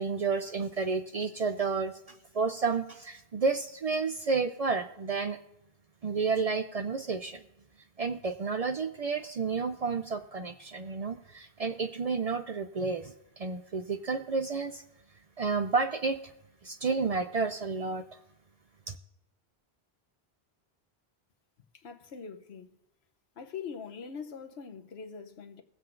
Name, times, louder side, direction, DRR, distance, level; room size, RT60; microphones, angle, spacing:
voice 1, 0.0-5.4 6.0-7.4 8.0-14.8 15.4-16.2 16.6-18.0 18.9-19.0, right 4 dB, 55° right, 0.4 m, -31 dB
voice 2, 21.7-22.7 23.4-25.6, left 6 dB, 90° left, 1.1 m, -42 dB
21.0 x 7.6 x 2.5 m
omnidirectional pair, 1.0 m